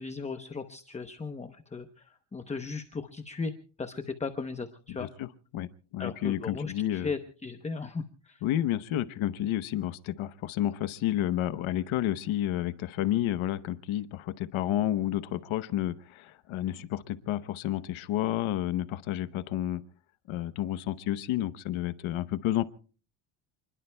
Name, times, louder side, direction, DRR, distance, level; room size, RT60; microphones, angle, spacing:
voice 1, 0.0-3.5 3.8-5.1 6.0-8.4, left 4 dB, 15° left, 8 dB, 0.8 m, -37 dB
voice 2, 4.9-5.3 5.5-5.7 5.9-7.1 8.4-19.8 20.3-22.6, left 13 dB, 75° left, 13 dB, 1.0 m, -30 dB
29.0 x 21.5 x 2.2 m, 0.40 s
cardioid pair, 155°, 48 cm